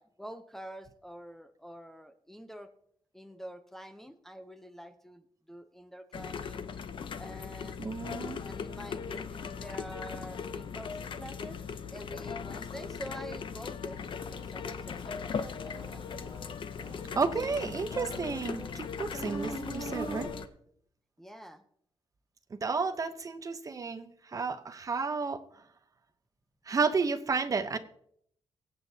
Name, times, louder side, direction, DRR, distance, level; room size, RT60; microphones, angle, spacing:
voice 1, 0.0-2.7 3.1-6.7 7.2-7.8 8.4-16.0 21.2-21.6, equal, 5° left, 6 dB, 0.6 m, -47 dB
sound 1, 6.1-20.5, left 6 dB, 55° left, 0.7 m, -39 dB
voice 2, 7.8-8.4 17.2-20.3 22.5-25.4 26.7-27.8, right 4 dB, 35° right, 10 dB, 0.7 m, -32 dB
Insect, 14.0-20.3, right 2 dB, 35° left, 5.9 m, -44 dB
23.5 x 8.0 x 2.8 m, 0.69 s
wide cardioid pair, 165°, 10 cm